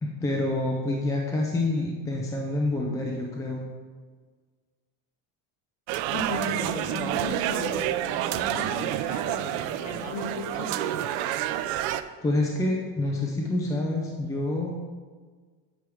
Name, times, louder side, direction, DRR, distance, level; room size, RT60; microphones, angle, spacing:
voice 1, 0.0-3.6 12.2-14.7, left 2 dB, 10° left, -1 dB, 0.4 m, -27 dB
sound 1, 5.9-12.0, right 12 dB, 85° right, 0.5 m, -29 dB
voice 2, 6.1-10.9, left 3 dB, 45° left, -3 dB, 2.3 m, -36 dB
8.5 x 4.6 x 4.7 m, 1.5 s
cardioid pair, 160°, 40 cm